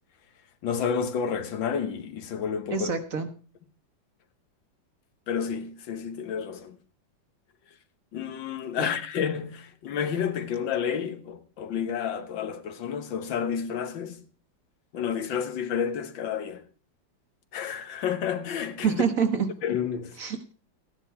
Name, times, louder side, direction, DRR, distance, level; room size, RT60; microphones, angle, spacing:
voice 1, 0.6-2.9 5.3-6.8 8.1-14.2 14.9-16.6 17.5-19.0 19.6-20.2, left 7 dB, 75° left, 1.8 m, -30 dB
voice 2, 2.7-3.3 8.8-8.9 18.8-19.5 20.2-20.5, right 6 dB, 50° right, 1.5 m, -26 dB
14.5 x 10.0 x 4.7 m
omnidirectional pair, 2.1 m